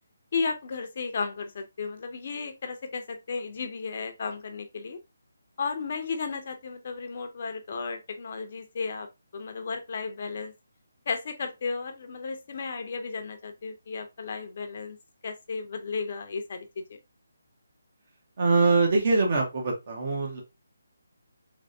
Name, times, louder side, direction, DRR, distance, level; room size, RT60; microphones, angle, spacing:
voice 1, 0.3-5.0 5.6-9.1 9.3-10.5 11.1-15.0 15.2-17.0, left 4 dB, 45° left, 0.7 m, -34 dB
voice 2, 18.4-20.4, right 3 dB, 45° right, 1.4 m, -23 dB
3.4 x 3.3 x 2.6 m
hypercardioid pair, 165°, 0 cm